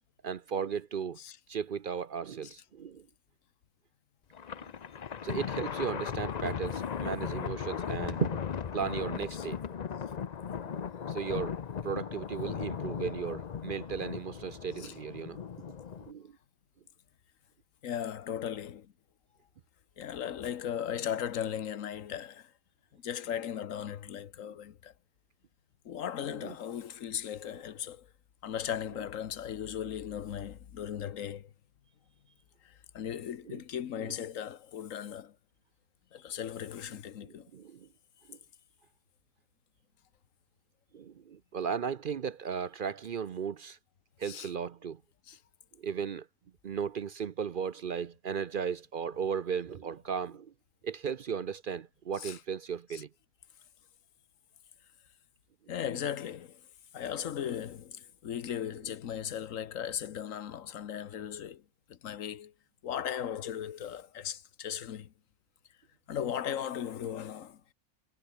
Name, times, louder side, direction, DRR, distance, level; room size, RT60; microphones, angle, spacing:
voice 1, 0.2-1.2 1.5-3.1 5.2-8.4 8.7-9.6 10.6-11.6 11.8-15.4 16.0-16.3 26.4-26.5 33.5-33.6 37.2-37.9 38.3-38.4 40.9-43.8 44.2-45.0 45.8-46.3 46.6-50.5 50.8-53.1, right 7 dB, 50° right, 0.7 m, -36 dB
Thunder, 4.3-16.1, left 7 dB, 40° left, 0.6 m, -37 dB
voice 2, 17.8-18.9 20.0-22.5 22.9-24.9 25.8-28.1 28.4-31.5 32.6-35.3 36.1-37.5 44.2-44.5 45.3-45.4 52.2-52.4 52.9-53.0 55.7-56.6 56.9-61.6 61.9-62.5 62.8-65.1 66.1-67.6, left 9 dB, 90° left, 1.4 m, -37 dB
omnidirectional pair, 1.3 m